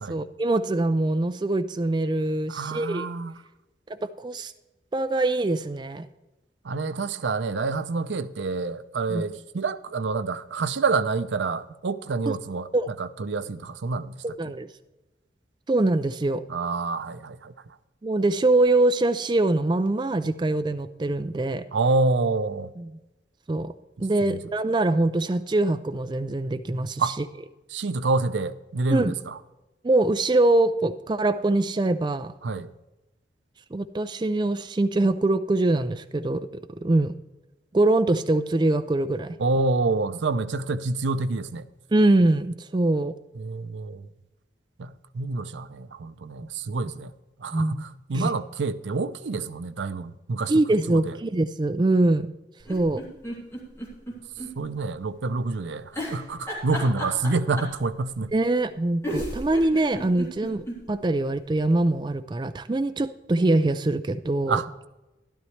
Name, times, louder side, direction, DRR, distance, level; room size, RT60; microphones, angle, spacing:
voice 1, 0.1-3.1 4.0-4.5 4.9-6.0 9.1-9.2 12.3-12.4 12.7-12.9 14.2-14.7 15.7-16.4 18.0-21.6 22.8-22.9 23.5-23.7 24.0-27.2 28.9-29.1 29.8-32.3 33.7-36.5 36.8-37.1 37.7-39.4 41.9-43.1 47.5-47.8 48.1-48.3 50.5-52.3 52.7-53.0 58.3-64.6, right 2 dB, 25° right, 0.4 m, -23 dB
voice 2, 2.5-3.3 6.6-14.2 16.5-17.5 21.7-22.7 24.0-24.4 27.0-27.1 27.7-29.4 32.4-32.7 39.4-41.6 43.4-44.1 44.8-47.1 47.4-50.5 50.9-51.2 54.6-58.3 64.5-64.9, right 3 dB, 90° right, 0.5 m, -27 dB
sound 1, 52.6-54.5 54.8-54.9 55.9-57.8 58.7-58.8 59.0-60.8 61.2-61.3 61.5-61.6, equal, 15° left, 2.9 m, -33 dB
12.5 x 12.0 x 3.2 m
head